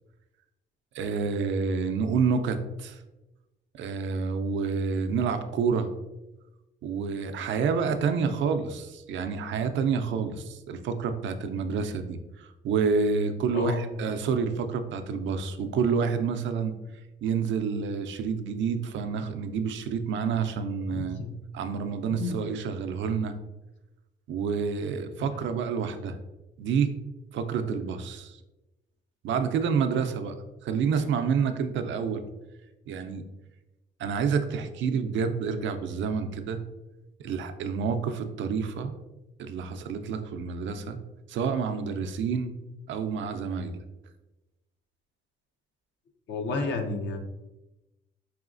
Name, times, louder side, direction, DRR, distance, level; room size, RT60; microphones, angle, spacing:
voice 1, 0.9-3.0 3.7-5.9 6.8-16.7 17.2-21.2 21.5-23.3 24.3-26.2 26.6-26.9 27.3-28.4 29.2-30.4 30.6-32.2 32.9-33.2 34.0-36.6 37.2-38.9 39.4-41.0 41.3-42.6 42.9-43.8, right 5 dB, 70° right, 8 dB, 0.5 m, -28 dB
voice 2, 13.5-13.9 20.9-21.4 22.2-22.4 25.2-25.3 46.3-47.2, left 3 dB, 65° left, 4 dB, 0.7 m, -31 dB
4.8 x 3.0 x 2.5 m, 1.0 s
cardioid pair, 90°, 20 cm